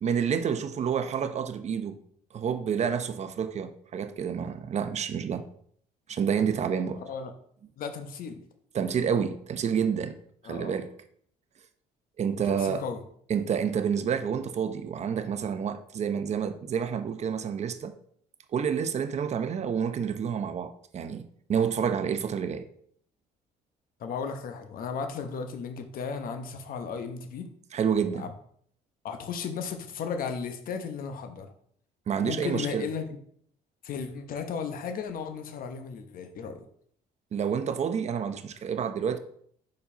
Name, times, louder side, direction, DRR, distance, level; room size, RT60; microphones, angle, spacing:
voice 1, 0.0-2.0 2.3-5.4 6.1-7.0 8.7-10.2 10.5-10.9 12.2-12.8 13.3-17.9 18.5-22.6 27.7-28.3 32.1-32.8 37.3-39.2, right 7 dB, 40° right, 0.7 m, -29 dB
voice 2, 7.0-7.3 7.8-8.4 10.4-10.8 12.4-13.0 24.0-27.5 28.1-28.3 29.0-31.5 32.2-33.2 33.8-36.7, left 6 dB, 60° left, 1.0 m, -35 dB
5.3 x 4.6 x 5.6 m
cardioid pair, 110°, 17 cm